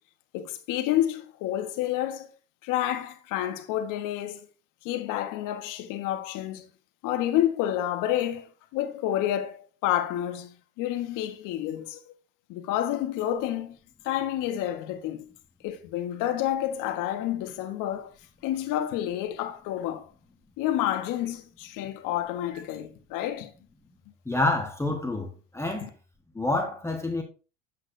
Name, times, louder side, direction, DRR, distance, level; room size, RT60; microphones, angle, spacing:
voice 1, 0.3-2.3 2.6-4.5 4.8-6.7 7.0-8.5 8.7-12.0 12.5-13.8 14.0-15.3 15.6-18.1 18.4-20.1 20.6-23.5 25.7-25.9, left 12 dB, 60° left, 1.2 m, -29 dB
voice 2, 24.2-25.9 26.3-27.2, left 2 dB, 5° left, 1.3 m, -28 dB
8.2 x 5.9 x 2.6 m
supercardioid pair, 95°, 36 cm